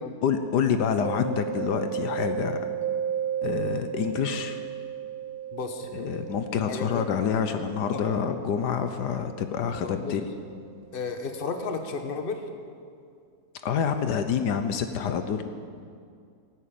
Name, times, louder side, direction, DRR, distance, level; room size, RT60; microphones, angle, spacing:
voice 1, 0.2-2.6 3.4-4.6 5.9-10.3 13.6-15.5, left 7 dB, 75° left, 8 dB, 1.4 m, -27 dB
Mallet percussion, 1.0-10.6, right 9 dB, 60° right, 1.5 m, -35 dB
voice 2, 5.5-5.9 6.7-7.1 7.9-8.0 9.8-10.2 10.9-12.4, left 4 dB, 35° left, 6 dB, 1.3 m, -33 dB
17.5 x 9.3 x 8.6 m, 2.3 s
omnidirectional pair, 1.8 m